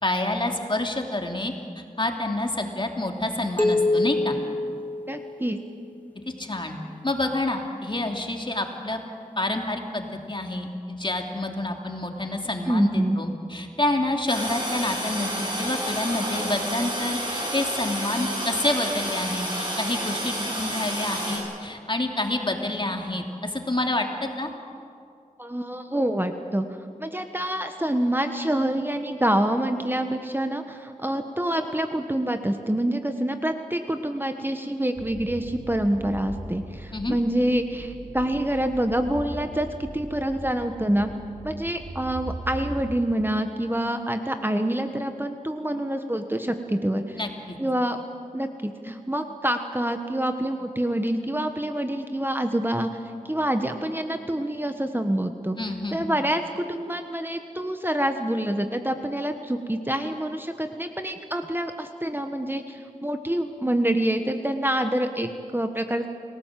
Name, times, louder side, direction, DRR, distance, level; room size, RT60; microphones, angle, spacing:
voice 1, 0.0-4.4 6.4-6.7 7.0-9.0 9.4-24.5 36.9-37.2 47.2-47.6 55.6-56.1, left 2 dB, 35° left, 2 dB, 2.9 m, -28 dB
sound 1, 3.6-6.0, left 2 dB, 10° left, 2.3 m, -26 dB
voice 2, 5.1-5.6 12.7-13.2 25.4-26.7 27.0-41.1 41.4-47.2 47.6-48.0 48.3-52.9 53.2-55.6 55.9-66.1, right 1 dB, 15° right, 6 dB, 1.3 m, -26 dB
Toilet flush, 14.3-21.4, equal, 35° right, 8.0 m, -30 dB
sound 2, 34.9-42.9, right 1 dB, 65° right, 5.7 m, -39 dB
28.5 x 18.0 x 7.6 m, 2.3 s
wide cardioid pair, 50°, 14 cm